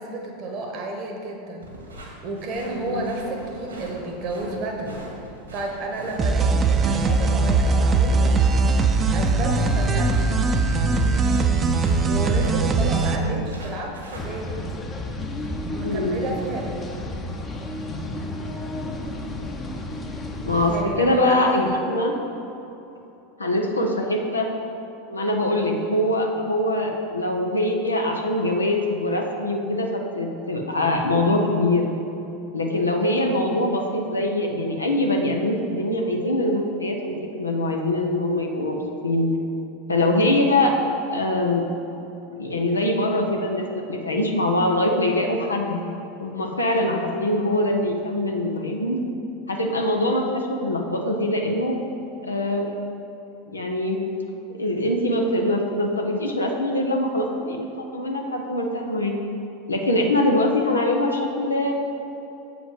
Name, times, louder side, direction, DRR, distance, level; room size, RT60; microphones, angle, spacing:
voice 1, 0.0-1.7 2.2-5.0 5.5-8.4 9.1-10.2 12.0-14.6 15.6-16.8 20.7-21.8 24.0-24.2, right 2 dB, 45° right, 1 dB, 1.0 m, -31 dB
sound 1, 1.6-14.4, right 1 dB, 80° right, 1.6 m, -42 dB
voice 2, 2.7-3.1 13.2-13.3 15.8-16.2 20.5-22.1 23.4-24.5 25.1-31.8 32.5-38.8 39.0-39.3 39.9-40.7 41.1-41.6 42.4-45.8 46.2-49.0 49.5-51.8 52.2-52.7 53.5-54.0 54.6-59.1 59.7-61.7, left 1 dB, 85° left, 1 dB, 0.7 m, -23 dB
sound 2, 6.2-13.2, right 3 dB, 25° right, 0.6 m, -20 dB
sound 3, 14.1-20.8, left 1 dB, 25° left, 0.8 m, -32 dB
7.5 x 5.0 x 5.1 m, 2.9 s
figure-of-eight pair, 85°, 0 cm